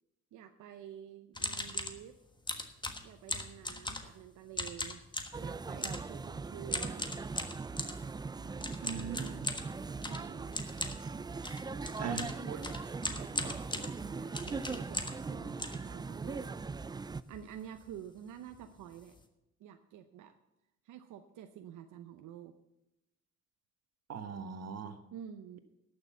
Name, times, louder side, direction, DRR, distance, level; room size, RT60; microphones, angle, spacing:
voice 1, 0.3-2.2 3.0-5.0 5.4-7.1 9.2-9.4 10.0-10.6 12.0-12.6 13.1-16.6 17.3-19.2 19.6-20.4 20.8-22.5 25.1-25.6, right 10 dB, 80° right, 7 dB, 0.8 m, -49 dB
sound 1, 1.3-2.0 2.5-4.2 4.5-5.4 5.8-6.1 6.7-8.0 8.6-15.3 15.6-16.4 16.9-17.0 17.2-17.5 17.8-18.0 18.5-18.6 18.9-19.2, left 2 dB, 15° left, 1.4 m, -39 dB
sound 2, 5.3-17.2, right 4 dB, 15° right, 0.3 m, -40 dB
voice 2, 8.8-9.4 12.0-12.6 24.1-25.0, right 6 dB, 55° right, 9 dB, 1.4 m, -40 dB
11.5 x 6.7 x 8.0 m, 0.90 s
cardioid pair, 90°, 30 cm